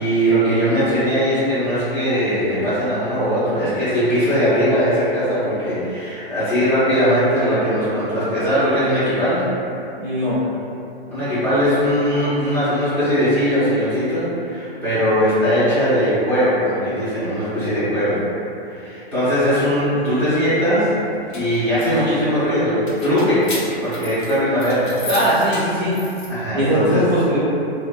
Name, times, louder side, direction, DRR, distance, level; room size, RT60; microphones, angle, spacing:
voice 1, 0.0-9.4 11.1-18.2 18.6-21.0 21.3-25.0 26.3-27.0, equal, 5° left, -17 dB, 0.5 m, -20 dB
voice 2, 10.0-10.4 20.0-20.2 25.1-26.0 26.5-27.4, equal, 45° right, -8 dB, 0.5 m, -20 dB
sound 1, 21.0-26.3, left 2 dB, 50° left, 0.6 m, -35 dB
2.5 x 2.2 x 2.3 m, 2.7 s
hypercardioid pair, 120°, 31 cm